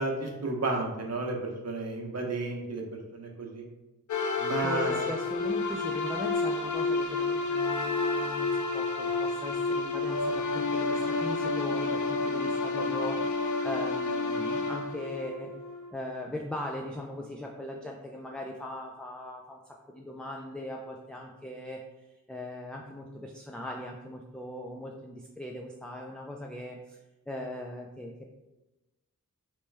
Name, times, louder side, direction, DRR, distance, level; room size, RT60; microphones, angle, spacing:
voice 1, 0.0-3.6 4.4-5.0, right 2 dB, 55° right, 1 dB, 0.8 m, -32 dB
sound 1, 4.1-15.9, left 3 dB, 65° left, 0.5 m, -30 dB
voice 2, 4.6-15.5 15.9-27.0 27.3-28.2, left 1 dB, 5° left, 0 dB, 0.3 m, -39 dB
3.2 x 3.1 x 3.3 m, 1.1 s
wide cardioid pair, 65°, 32 cm